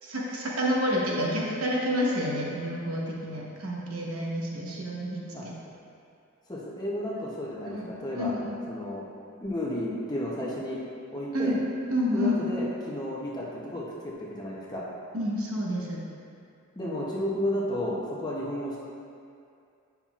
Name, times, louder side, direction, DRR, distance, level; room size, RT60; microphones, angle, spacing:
voice 1, 0.0-5.6 7.7-8.6 11.3-11.6 11.9-12.4 15.1-16.0, equal, 75° right, -3 dB, 1.1 m, -29 dB
voice 2, 6.5-8.3 8.7-9.1 9.4-10.8 11.1-11.6 12.1-13.9 14.2-14.8 16.8-18.8, left 1 dB, 20° left, -5 dB, 0.7 m, -32 dB
8.6 x 5.7 x 2.4 m, 2.4 s
head